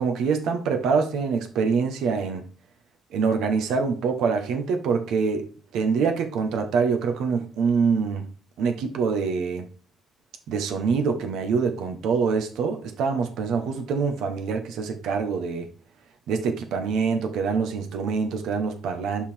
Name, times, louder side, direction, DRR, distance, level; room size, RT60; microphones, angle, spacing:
voice 1, 0.0-2.5 3.1-5.4 5.7-9.7 10.5-15.7 16.3-19.3, right 5 dB, 85° right, 5 dB, 1.1 m, -25 dB
5.5 x 4.8 x 4.4 m, 0.38 s
cardioid pair, 90°, 0 cm